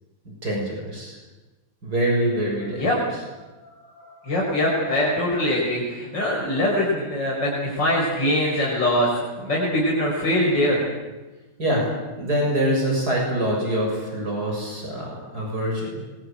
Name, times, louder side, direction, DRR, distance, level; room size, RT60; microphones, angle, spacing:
voice 1, 0.4-1.2 1.8-2.9 11.6-11.9 12.2-16.0, right 1 dB, 60° right, -1 dB, 7.6 m, -24 dB
voice 2, 2.8-3.2 4.0-10.9, left 1 dB, 80° left, -4 dB, 6.2 m, -23 dB
26.0 x 22.5 x 9.1 m, 1.2 s
omnidirectional pair, 1.9 m